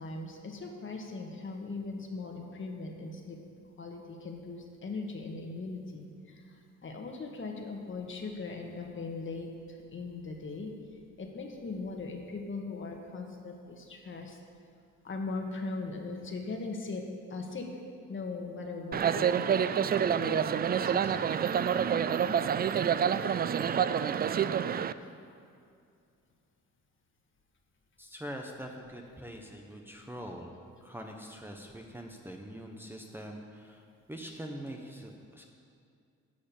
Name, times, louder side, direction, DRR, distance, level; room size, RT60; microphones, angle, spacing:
voice 1, 0.0-3.4 3.8-6.4 6.8-10.7 11.2-14.4 15.0-17.7 18.1-19.5 20.2-20.5 20.8-21.3 25.0-25.1, left 3 dB, 40° left, 2 dB, 1.8 m, -39 dB
sound 1, 18.9-24.9, right 8 dB, 30° right, 0.4 m, -28 dB
voice 2, 28.0-30.5 30.8-35.5, equal, 5° right, 0 dB, 1.0 m, -43 dB
11.0 x 6.4 x 8.8 m, 2.4 s
cardioid pair, 90°, 30 cm